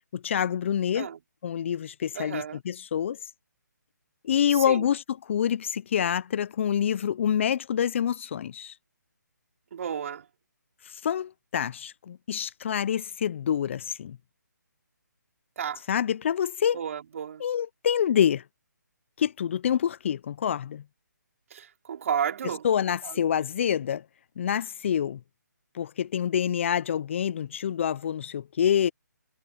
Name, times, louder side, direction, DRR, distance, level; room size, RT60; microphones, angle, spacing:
voice 1, 0.1-1.1 1.4-3.2 4.2-8.7 11.0-14.2 15.9-16.8 17.4-18.4 19.2-20.8 22.4-24.0 24.4-25.2 25.7-28.9, left 9 dB, 40° left, 0.7 m, -27 dB
voice 2, 2.1-2.6 4.7-4.9 9.7-10.3 15.6-15.8 16.7-17.4 21.5-22.6 23.0-23.2, right 8 dB, 45° right, 4.3 m, -32 dB
figure-of-eight pair, 150°, 10 cm